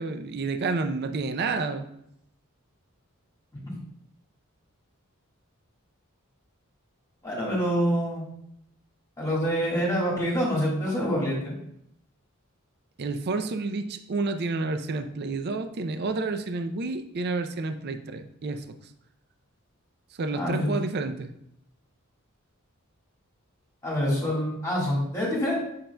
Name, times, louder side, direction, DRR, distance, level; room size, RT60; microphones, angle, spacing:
voice 1, 0.0-1.9 13.0-18.7 20.1-21.3, right 3 dB, 50° right, 8 dB, 0.5 m, -30 dB
voice 2, 7.2-8.2 9.2-11.5 20.3-20.7 23.8-25.6, equal, 15° left, -5 dB, 1.6 m, -26 dB
7.5 x 5.7 x 2.2 m, 0.74 s
head